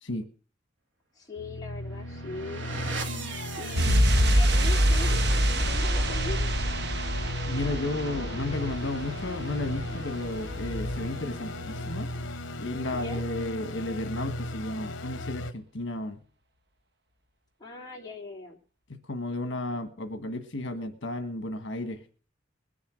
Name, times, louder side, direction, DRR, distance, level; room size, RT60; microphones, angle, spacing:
voice 1, 1.1-2.7 3.6-5.2 5.7-6.6 12.9-13.2 17.6-18.6, left 2 dB, 20° left, -2 dB, 3.4 m, -40 dB
sound 1, 1.4-15.5, left 1 dB, 90° left, 0.9 m, -36 dB
sound 2, 1.8-12.5, right 1 dB, 75° right, 1.6 m, -40 dB
sound 3, 3.8-10.3 10.5-10.6, equal, 55° right, 1.2 m, -26 dB
voice 2, 7.5-12.1 12.6-16.2 18.9-22.0, left 2 dB, 75° left, 7 dB, 1.6 m, -33 dB
21.0 x 7.1 x 6.4 m, 0.39 s
head